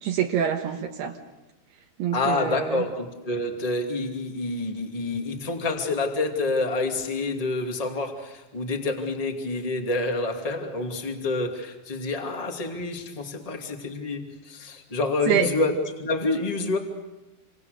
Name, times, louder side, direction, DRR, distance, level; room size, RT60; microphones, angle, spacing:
voice 1, 0.0-1.2 2.0-2.8 15.3-15.5, right 8 dB, 70° right, 2 dB, 3.1 m, -25 dB
voice 2, 2.1-16.8, left 2 dB, 15° left, 3 dB, 1.4 m, -28 dB
28.5 x 26.0 x 6.7 m, 1.1 s
omnidirectional pair, 5.1 m